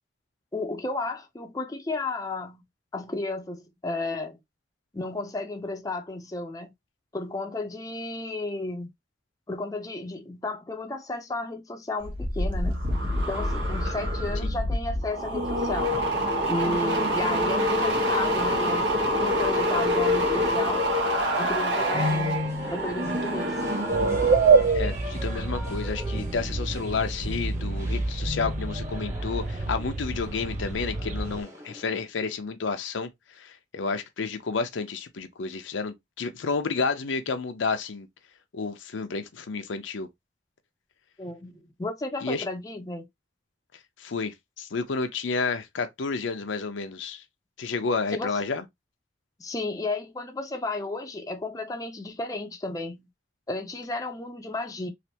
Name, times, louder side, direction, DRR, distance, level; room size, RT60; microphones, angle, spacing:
voice 1, 0.5-2.6 2.9-4.4 4.9-6.7 7.1-8.9 9.5-12.9 13.3-16.0 16.5-20.8 21.4-22.4 22.7-23.7 41.2-43.1 48.1-48.3 49.4-53.1 53.5-54.9, left 2 dB, 20° left, 0.5 m, -33 dB
sound 1, 12.0-24.7 25.0-25.4, equal, 75° right, 1.2 m, -26 dB
sound 2, 21.8-32.0, left 2 dB, 15° right, 0.9 m, -37 dB
sound 3, 23.9-31.4, right 4 dB, 45° right, 0.5 m, -26 dB
voice 2, 24.7-33.1 33.4-38.1 38.5-40.1 42.2-42.4 44.0-47.2 47.6-48.6, left 4 dB, 85° left, 0.6 m, -30 dB
3.3 x 2.5 x 2.8 m
head